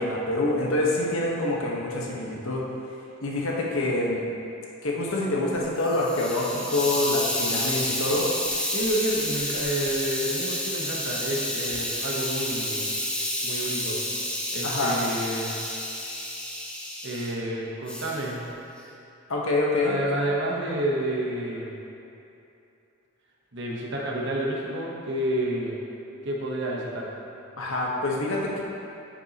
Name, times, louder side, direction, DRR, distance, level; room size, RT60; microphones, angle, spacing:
voice 1, 0.0-2.6 3.2-4.2 4.8-8.3 14.6-15.0 19.3-20.0 27.6-28.6, left 2 dB, 80° left, -3 dB, 1.3 m, -26 dB
Hiss, 5.6-17.3 17.9-18.2, left 1 dB, 5° left, 0.7 m, -30 dB
voice 2, 8.7-12.8 13.4-14.0 14.5-15.6 17.0-18.5 19.8-21.7 23.5-25.7 26.2-27.1, right 1 dB, 60° right, -3 dB, 1.1 m, -29 dB
9.2 x 7.0 x 3.0 m, 2.8 s
head